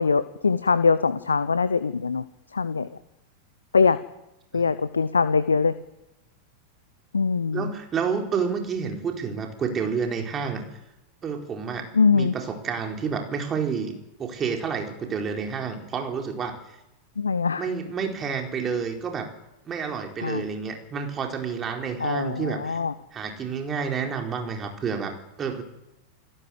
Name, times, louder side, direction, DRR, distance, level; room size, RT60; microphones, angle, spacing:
voice 1, 0.0-2.2 2.5-2.9 3.7-4.0 4.5-5.7 7.1-7.7 11.9-12.3 17.2-17.7 20.2-20.4 22.0-22.9, left 5 dB, 75° left, 15 dB, 0.9 m, -22 dB
voice 2, 7.5-10.6 11.2-13.9 14.2-16.8 17.6-19.3 19.7-22.8 23.1-25.6, right 6 dB, 25° right, 3 dB, 4.4 m, -29 dB
28.5 x 17.0 x 7.9 m, 0.93 s
figure-of-eight pair, 90°, 0 cm